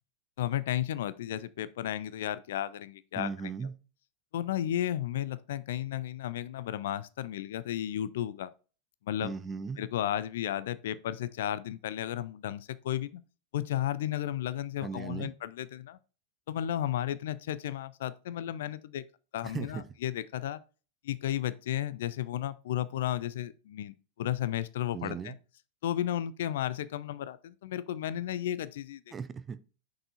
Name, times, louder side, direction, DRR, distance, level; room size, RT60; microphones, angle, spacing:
voice 1, 0.4-3.3 4.3-8.5 9.1-9.3 9.8-13.2 13.5-16.0 16.5-19.0 19.3-20.6 21.0-25.4 25.8-29.0, left 12 dB, 55° left, 0.4 m, -33 dB
voice 2, 3.2-3.7 9.2-9.8 14.8-15.3 19.4-19.8 24.9-25.3 29.1-29.6, right 5 dB, 20° right, 0.5 m, -37 dB
6.1 x 4.8 x 4.0 m
figure-of-eight pair, 90°, 0 cm